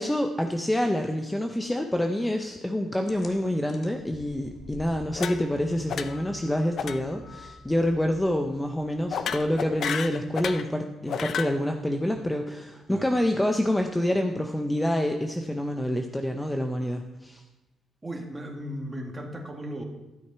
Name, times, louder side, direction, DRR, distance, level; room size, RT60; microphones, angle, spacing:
voice 1, 0.0-17.4, left 1 dB, 10° left, 5 dB, 0.6 m, -27 dB
sound 1, 3.1-10.2, left 3 dB, 45° left, 1.5 m, -49 dB
sound 2, 5.1-5.6 5.9-6.3 6.8-7.0 7.3-7.5 9.1-10.7 11.1-11.5, left 7 dB, 60° left, 0.5 m, -32 dB
voice 2, 18.0-19.8, equal, 20° right, 2 dB, 1.8 m, -36 dB
12.0 x 6.4 x 4.6 m, 1.0 s
cardioid pair, 90°, 0 cm